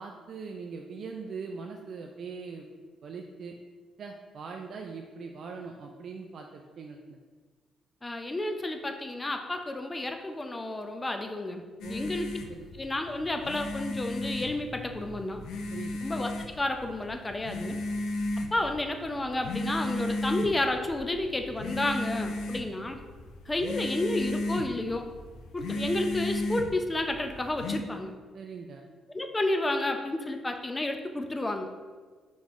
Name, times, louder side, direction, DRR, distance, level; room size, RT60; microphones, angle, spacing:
voice 1, 0.0-2.7 3.0-3.6 4.0-7.2 11.8-12.2 12.5-12.7 15.7-16.0 28.3-28.9, right 5 dB, 60° right, 2 dB, 0.3 m, -41 dB
voice 2, 8.0-12.3 12.8-15.4 16.0-17.8 18.5-23.0 23.5-25.1 25.5-28.1 29.1-31.7, left 2 dB, 20° left, 5 dB, 0.4 m, -31 dB
sound 1, 11.8-27.8, left 1 dB, 85° left, 0.4 m, -35 dB
5.3 x 3.0 x 2.5 m, 1.5 s
cardioid pair, 90°, 0 cm